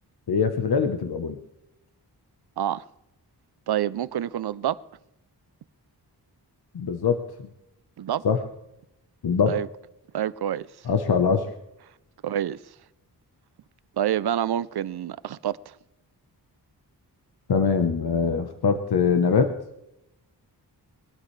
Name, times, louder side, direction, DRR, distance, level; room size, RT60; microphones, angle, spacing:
voice 1, 0.3-1.4 6.7-7.2 8.2-8.4 9.2-9.6 10.9-11.5 17.5-19.5, left 5 dB, 70° left, 1.0 m, -22 dB
voice 2, 3.7-4.8 8.0-8.3 9.5-9.7 10.1-10.7 12.2-12.6 14.0-15.7, right 10 dB, 70° right, 0.6 m, -27 dB
21.5 x 13.0 x 3.3 m
wide cardioid pair, 155°, 40 cm